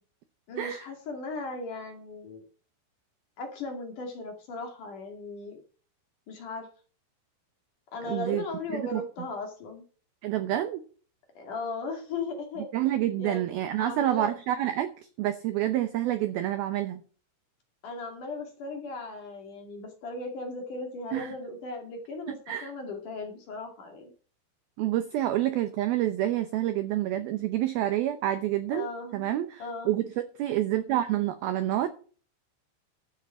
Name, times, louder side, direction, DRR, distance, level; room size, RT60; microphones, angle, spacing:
voice 1, 0.5-2.4 3.4-5.6 6.3-6.7 7.9-9.8 11.3-12.7 13.2-14.3 17.8-22.4 22.6-24.1 28.7-29.9, left 3 dB, 50° left, 3 dB, 3.2 m, -37 dB
voice 2, 8.0-8.4 8.7-9.0 10.2-10.8 12.7-17.0 21.1-21.3 22.3-22.7 24.8-31.9, right 13 dB, 80° right, 10 dB, 2.1 m, -28 dB
13.0 x 8.6 x 5.6 m, 0.40 s
omnidirectional pair, 5.6 m